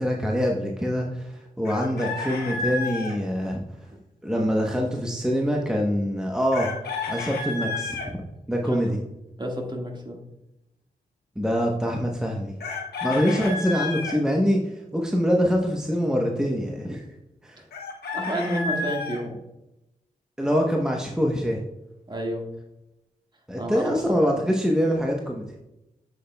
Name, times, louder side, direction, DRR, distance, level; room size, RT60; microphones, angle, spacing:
voice 1, 0.0-3.6 4.2-6.7 7.1-8.2 8.5-9.0 11.4-12.5 13.0-17.0 17.4-17.6 20.4-21.6 23.5-25.5, equal, 5° right, 0 dB, 0.9 m, -24 dB
Chicken rooster, 1.6-3.1 6.5-8.1 12.6-14.2 17.7-19.2, left 4 dB, 80° left, 1.1 m, -31 dB
voice 2, 9.4-10.2 18.1-19.4 22.1-22.4 23.5-23.9 24.2-24.4, right 1 dB, 30° right, 1 dB, 1.6 m, -30 dB
7.5 x 6.5 x 2.2 m, 0.92 s
cardioid pair, 45°, 16 cm